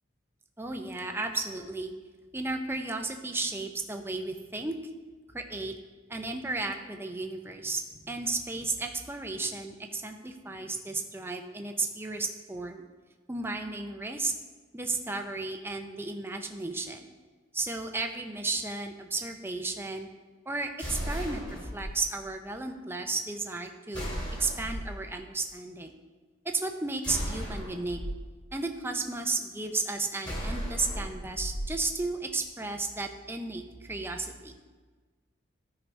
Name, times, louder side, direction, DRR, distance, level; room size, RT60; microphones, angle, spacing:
voice 1, 0.6-1.9 2.3-4.7 5.3-5.7 6.1-12.8 13.3-14.3 14.7-17.1 17.5-20.1 20.5-24.1 24.4-25.9 26.4-28.0 28.5-34.6, right 3 dB, 10° right, 4 dB, 0.6 m, -34 dB
sound 1, 20.8-21.9 23.9-25.0 27.0-28.1 30.2-31.7, equal, 25° left, 2.6 m, -35 dB
13.0 x 4.9 x 3.3 m, 1.4 s
head